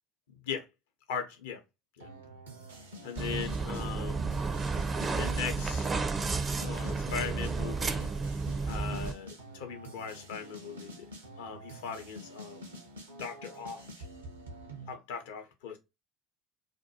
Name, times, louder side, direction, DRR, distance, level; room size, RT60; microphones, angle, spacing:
voice 1, 0.3-0.7 1.1-1.6 2.0-2.1 3.0-4.3 5.2-5.9 6.5-8.1 8.6-11.1 11.4-12.7 13.2-13.8 14.9-15.8, left 6 dB, 70° left, 0.7 m, -39 dB
sound 1, 2.0-14.9, right 1 dB, 85° right, 0.7 m, -47 dB
sound 2, 3.2-9.1, right 4 dB, 30° right, 0.4 m, -32 dB
2.6 x 2.2 x 2.7 m
figure-of-eight pair, 60°, 0 cm